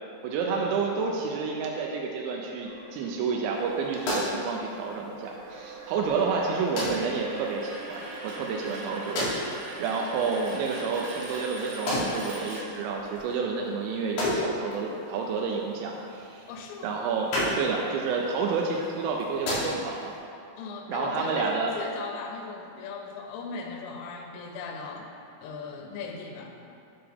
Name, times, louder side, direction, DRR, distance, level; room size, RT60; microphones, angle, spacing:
voice 1, 0.2-16.5 16.8-17.3 17.6-20.1 20.9-21.7, right 5 dB, 90° right, -1 dB, 2.6 m, -30 dB
sound 1, 2.6-13.2, right 2 dB, 65° right, 2.3 m, -42 dB
sound 2, 3.5-20.2, left 1 dB, 65° left, 2.4 m, -36 dB
voice 2, 16.5-17.0 20.6-25.1 25.4-26.8, left 4 dB, 90° left, 2 dB, 3.3 m, -38 dB
9.3 x 3.4 x 3.5 m, 2.6 s
omnidirectional pair, 5.7 m